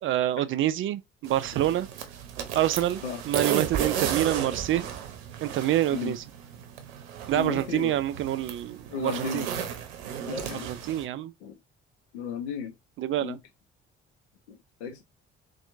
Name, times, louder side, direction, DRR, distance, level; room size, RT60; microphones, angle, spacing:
voice 1, 0.0-1.9 2.5-4.8 5.4-6.2 7.3-9.5 10.6-11.3 13.0-13.4, right 13 dB, 40° right, 0.4 m, -27 dB
sound 1, 1.2-11.0, right 9 dB, 70° right, 0.7 m, -34 dB
voice 2, 7.3-8.0 8.9-9.5 10.3-10.7 11.4-11.6 12.1-12.7 13.2-13.4 14.5-15.0, left 6 dB, 70° left, 0.7 m, -34 dB
4.2 x 2.3 x 2.5 m
figure-of-eight pair, 45°, 34 cm